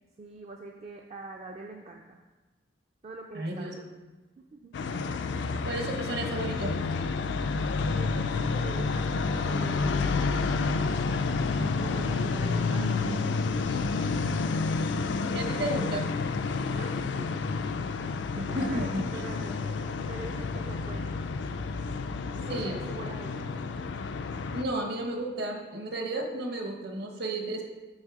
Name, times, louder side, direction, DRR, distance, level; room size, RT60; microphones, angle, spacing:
voice 1, 0.2-2.2 3.0-3.9 4.5-4.7 7.9-10.9 11.6-13.5 16.7-17.4 18.3-19.8 20.1-21.2 22.5-23.7, right 2 dB, 35° right, 1 dB, 0.4 m, -44 dB
voice 2, 3.3-3.7 5.6-6.7 15.1-16.1 18.3-19.0 22.5-22.8 24.5-27.6, right 2 dB, 60° right, 3 dB, 1.0 m, -33 dB
sound 1, 4.7-24.6, left 4 dB, 70° left, 0.4 m, -30 dB
6.3 x 4.1 x 4.8 m, 1.2 s
head